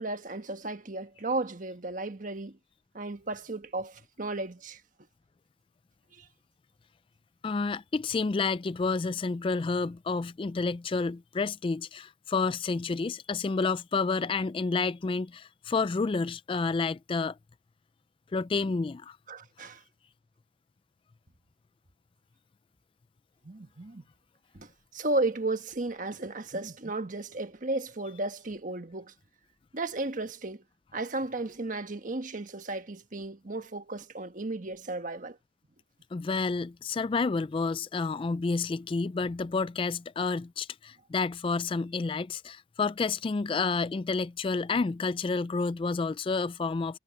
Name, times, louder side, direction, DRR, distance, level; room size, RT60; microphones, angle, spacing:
voice 1, 0.0-2.6 2.9-4.8 6.1-6.3 19.3-19.8 23.4-24.0 24.5-29.1 29.7-30.6 30.9-35.4, right 2 dB, 45° right, 1.3 m, -34 dB
voice 2, 7.4-17.4 18.3-19.2 36.1-47.0, left 4 dB, 30° left, 0.3 m, -30 dB
head